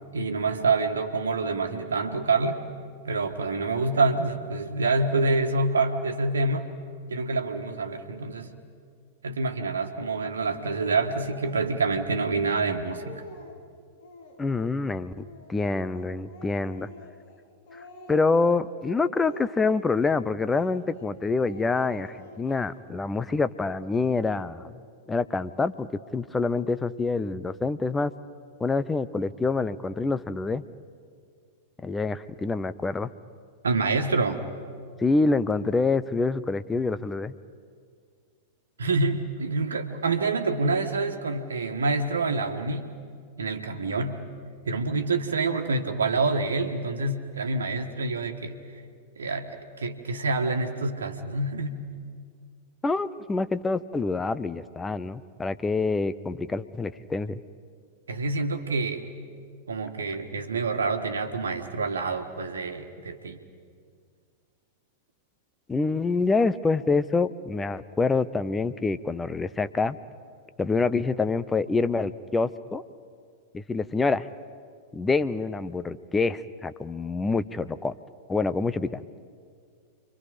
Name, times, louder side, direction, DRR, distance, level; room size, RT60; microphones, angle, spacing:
voice 1, 0.1-2.6 3.0-6.7 7.1-8.5 9.2-13.2 33.6-34.4 38.8-42.9 43.4-44.2 44.6-48.6 49.2-51.8 58.1-59.0 59.7-63.4, right 3 dB, 80° right, 4 dB, 1.5 m, -27 dB
Speech, 11.2-11.6 12.3-12.4 12.7-13.6 14.0-14.6 15.1-17.4 17.7-18.6 19.1-20.0 20.4-21.1 21.4-22.6, equal, 55° left, 3.6 m, -47 dB
voice 2, 14.4-16.9 18.1-24.7 25.1-25.9 26.1-28.1 28.6-30.6 31.8-33.1 35.0-37.3 52.8-57.4 65.7-70.0 70.6-72.8 73.5-74.3 74.9-77.9 78.3-79.0, left 3 dB, 15° left, 14 dB, 0.7 m, -26 dB
29.5 x 24.5 x 5.1 m, 2.1 s
figure-of-eight pair, 100°, 0 cm